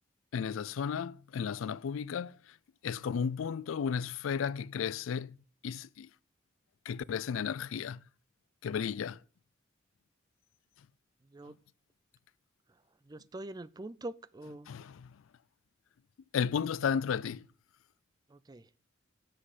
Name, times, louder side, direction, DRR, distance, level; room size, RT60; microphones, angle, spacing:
voice 1, 0.3-2.6 2.8-5.4 5.6-6.1 6.9-8.0 8.6-9.2 11.5-11.6 14.7-15.2 16.3-17.5, left 7 dB, 85° left, 0.4 m, -34 dB
voice 2, 11.2-11.6 13.0-14.7 18.3-18.7, right 2 dB, 20° right, 0.3 m, -44 dB
8.4 x 7.6 x 4.9 m
head